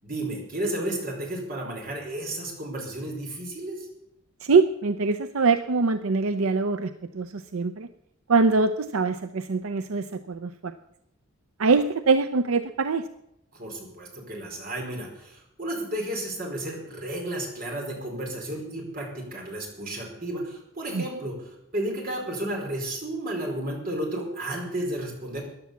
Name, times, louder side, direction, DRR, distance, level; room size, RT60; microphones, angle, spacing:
voice 1, 0.0-3.9 13.5-25.4, right 1 dB, 40° right, 0 dB, 4.7 m, -32 dB
voice 2, 4.4-7.9 8.3-10.7 11.6-13.0 20.9-21.0, right 4 dB, 75° right, 10 dB, 0.6 m, -23 dB
14.5 x 10.5 x 7.1 m, 0.84 s
head